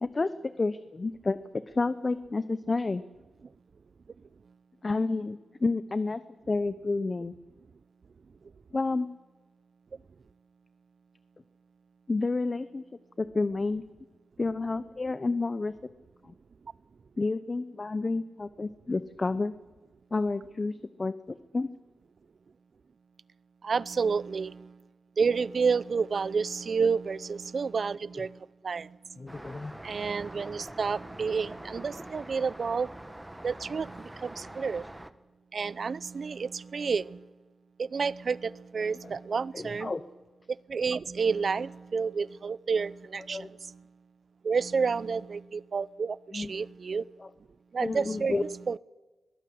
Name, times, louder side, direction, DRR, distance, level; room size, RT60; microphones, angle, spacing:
voice 1, 0.0-1.4 1.7-3.0 4.8-6.2 6.5-7.4 8.7-9.1 12.1-12.8 13.2-13.8 14.4-15.7 16.2-16.3 17.2-19.5 20.1-21.7 29.2-29.7 39.5-40.0 43.3-43.5 46.3-46.5 47.2-47.3 47.8-48.4, left 3 dB, 35° left, 0.8 m, -30 dB
voice 2, 23.6-24.7 25.2-28.4 28.6-28.9 29.8-32.9 33.4-34.8 35.5-37.2 37.8-39.9 40.7-43.8 44.4-47.0 47.7-48.8, right 5 dB, 60° right, 0.6 m, -30 dB
Traffic noise roadway noise, 29.3-35.1, right 1 dB, 10° right, 1.2 m, -44 dB
22.0 x 16.0 x 7.9 m
cardioid pair, 80°, 0 cm